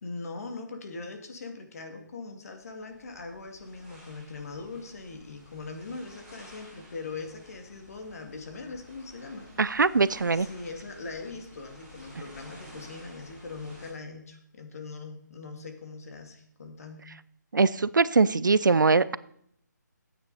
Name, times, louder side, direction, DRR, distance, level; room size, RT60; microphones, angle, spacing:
voice 1, 0.0-9.5 10.3-17.1, left 3 dB, 50° left, 4 dB, 2.3 m, -41 dB
sound 1, 2.6-13.9, equal, 5° right, 5.3 m, -52 dB
voice 2, 9.6-10.5 17.5-19.2, right 4 dB, 85° right, 18 dB, 0.6 m, -22 dB
13.5 x 9.0 x 4.1 m, 0.69 s
figure-of-eight pair, 160°, 10 cm